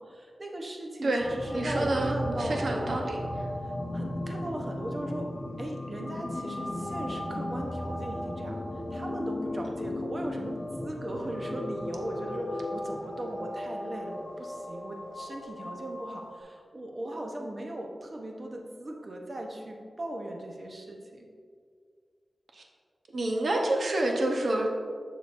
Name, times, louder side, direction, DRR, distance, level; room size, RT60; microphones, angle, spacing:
voice 1, 0.0-2.9 3.6-5.3 5.6-8.6 8.9-21.3, right 1 dB, 40° right, 1 dB, 0.8 m, -38 dB
sound 1, 1.2-16.4, left 1 dB, 50° left, 0.8 m, -36 dB
voice 2, 1.5-3.5 22.5-22.6 23.1-24.7, right 1 dB, 70° right, 1 dB, 0.8 m, -28 dB
6.8 x 6.5 x 2.6 m, 2.1 s
wide cardioid pair, 115°, 0 cm